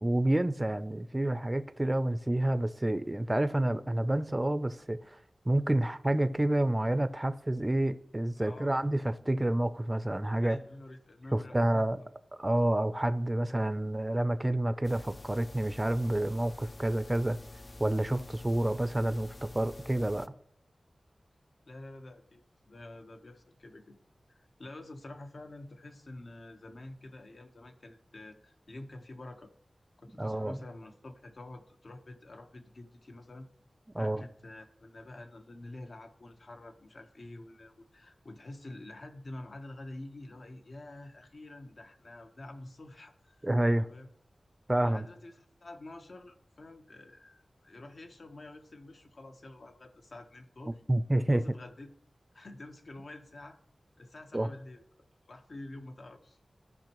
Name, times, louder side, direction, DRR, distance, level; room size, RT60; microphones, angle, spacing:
voice 1, 0.0-5.2 5.5-10.6 11.3-12.0 12.4-17.4 17.8-20.3 30.2-30.6 33.9-34.2 43.4-43.9 44.7-45.0 50.9-51.4 54.3-54.5, right 1 dB, 20° right, 0.5 m, -29 dB
voice 2, 8.4-8.8 10.3-12.1 21.7-23.9 24.3-29.5 30.0-33.5 34.0-44.1 44.8-50.8 51.3-51.9 52.3-53.6 54.0-54.8 55.3-56.4, left 2 dB, 65° left, 1.1 m, -48 dB
sound 1, 14.8-20.3, left 2 dB, 40° left, 0.4 m, -48 dB
14.5 x 5.4 x 3.0 m
wide cardioid pair, 75°, 0 cm